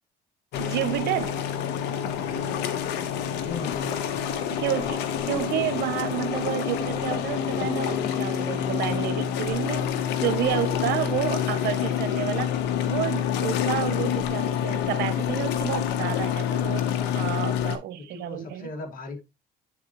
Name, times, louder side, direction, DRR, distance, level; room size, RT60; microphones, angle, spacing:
sound 1, 0.5-17.8, left 9 dB, 85° left, 0.8 m, -27 dB
voice 1, 0.6-1.4 4.5-9.9 10.2-12.5 12.9-16.9 17.1-18.7, right 13 dB, 75° right, 0.7 m, -30 dB
voice 2, 2.0-2.8 3.4-4.1 16.9-17.6 18.0-19.2, left 3 dB, 55° left, 1.9 m, -39 dB
8.6 x 3.9 x 2.9 m
cardioid pair, 110°, 17 cm